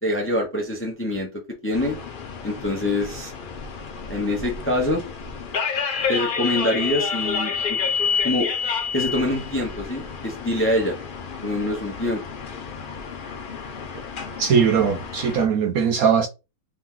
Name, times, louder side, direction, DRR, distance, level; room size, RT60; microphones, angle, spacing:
voice 1, 0.0-1.3 1.6-2.0 2.4-3.3 4.1-5.0 6.1-7.8 8.2-8.5 8.9-10.9 11.4-12.2, left 1 dB, 10° left, 0.8 m, -25 dB
sound 1, 1.7-15.5, left 6 dB, 80° left, 0.4 m, -29 dB
voice 2, 14.4-16.3, right 6 dB, 70° right, 0.9 m, -20 dB
3.5 x 3.0 x 3.7 m
omnidirectional pair, 1.8 m